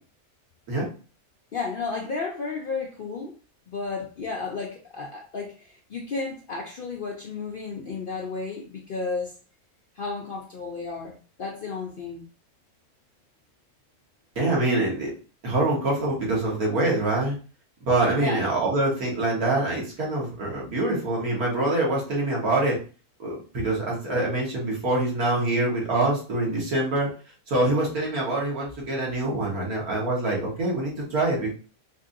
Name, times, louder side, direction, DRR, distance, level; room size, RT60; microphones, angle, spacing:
voice 1, 1.5-3.4 3.7-9.4 10.0-12.3 18.2-18.4, left 4 dB, 60° left, -1 dB, 0.5 m, -33 dB
voice 2, 14.4-15.1 15.4-17.4 17.9-22.8 23.2-27.1 27.5-31.5, right 2 dB, 85° right, -3 dB, 1.9 m, -25 dB
4.5 x 2.6 x 2.5 m, 0.36 s
omnidirectional pair, 1.6 m